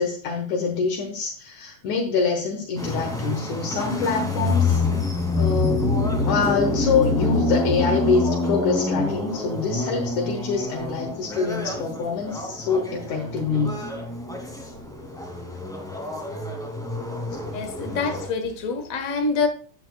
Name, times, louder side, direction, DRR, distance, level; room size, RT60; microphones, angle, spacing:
voice 1, 0.0-4.8 5.4-6.0 6.3-13.8, left 5 dB, 70° left, 2.5 m, -25 dB
sound 1, 2.7-18.3, left 2 dB, ahead, 1.7 m, -26 dB
voice 2, 17.5-19.5, left 4 dB, 50° left, 1.0 m, -26 dB
10.0 x 8.8 x 2.3 m
omnidirectional pair, 3.7 m